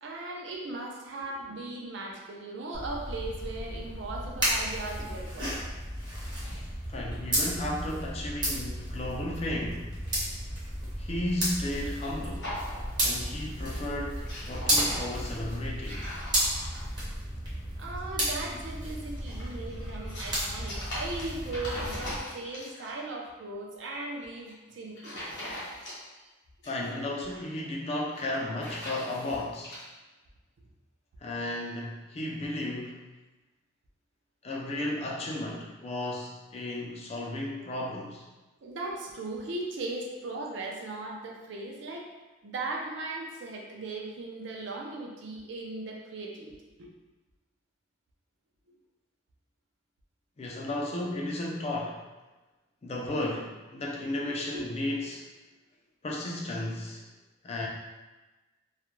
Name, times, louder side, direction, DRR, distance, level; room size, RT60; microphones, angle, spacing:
voice 1, 0.0-5.6 17.8-25.2 38.6-42.1 42.4-46.9 54.2-54.6, right 2 dB, 60° right, -1 dB, 0.4 m, -38 dB
sound 1, 2.7-22.2, equal, 20° right, 0.6 m, -33 dB
voice 2, 6.4-9.9 11.0-12.5 13.0-16.1 26.6-29.8 31.2-33.0 34.4-38.3 50.4-52.0 52.8-55.2 56.0-57.1 57.4-57.7, left 1 dB, 30° left, -2 dB, 0.3 m, -34 dB
sound 2, 12.4-13.3 13.6-13.9 14.1-17.0 18.9-22.9 24.3-24.5 25.0-26.2 26.5-27.4 28.0-29.8, left 1 dB, 60° left, 0.9 m, -41 dB
2.3 x 2.1 x 3.0 m, 1.2 s
head